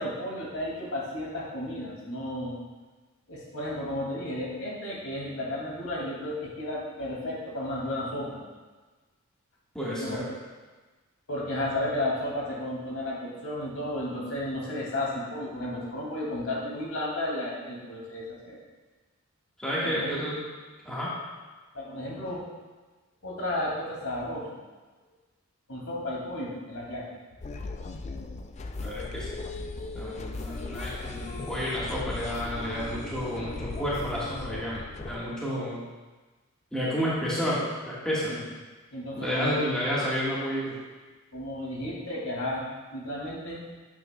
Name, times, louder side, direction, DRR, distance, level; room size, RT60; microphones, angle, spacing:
voice 1, 0.0-2.5 3.3-8.4 10.0-10.2 11.3-18.6 19.8-20.2 21.7-22.5 23.2-24.5 25.7-27.1 38.3-38.4 38.9-39.7 41.3-43.6, left 1 dB, 75° left, -4 dB, 2.4 m, -33 dB
voice 2, 9.7-10.3 19.6-20.4 20.8-21.1 28.8-29.4 29.9-34.8 35.0-35.8 36.7-38.3 39.2-40.7, equal, 5° left, -8 dB, 1.5 m, -30 dB
sound 1, 27.4-35.2, left 3 dB, 30° left, 0.3 m, -37 dB
9.6 x 7.9 x 2.3 m, 1.3 s
head